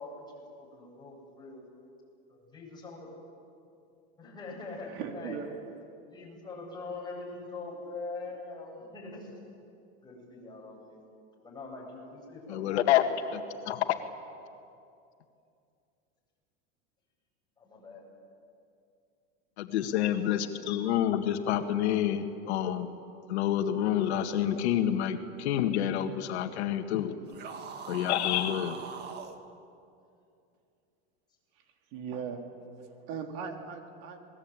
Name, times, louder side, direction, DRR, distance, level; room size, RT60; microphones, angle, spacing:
voice 1, 0.0-1.6 2.3-3.1 4.2-5.4 6.1-9.4 10.0-11.0 11.4-13.4 17.6-18.0, left 3 dB, 15° left, -3 dB, 8.0 m, -43 dB
voice 2, 4.9-5.5 31.9-32.5 32.8-34.2, right 7 dB, 60° right, 4 dB, 3.1 m, -38 dB
voice 3, 12.5-13.0 13.3-13.4 13.7-13.9 19.6-22.9 23.3-27.1 27.9-28.8, left 11 dB, 85° left, 7 dB, 1.9 m, -28 dB
sound 1, 27.3-29.4, right 6 dB, 30° right, 1.8 m, -41 dB
27.0 x 21.0 x 8.9 m, 2.5 s
supercardioid pair, 150°, 32 cm